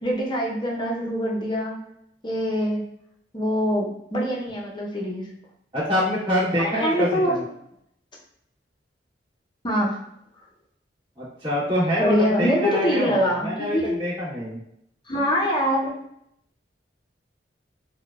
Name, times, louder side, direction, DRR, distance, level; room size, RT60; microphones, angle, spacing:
voice 1, 0.0-1.8 2.2-2.8 3.3-5.3 6.6-7.5 9.6-10.0 12.0-13.9 15.1-15.9, equal, 25° left, -2 dB, 0.6 m, -24 dB
voice 2, 5.7-7.4 11.2-14.6, equal, 30° right, -11 dB, 1.2 m, -25 dB
3.6 x 2.2 x 2.2 m, 0.75 s
head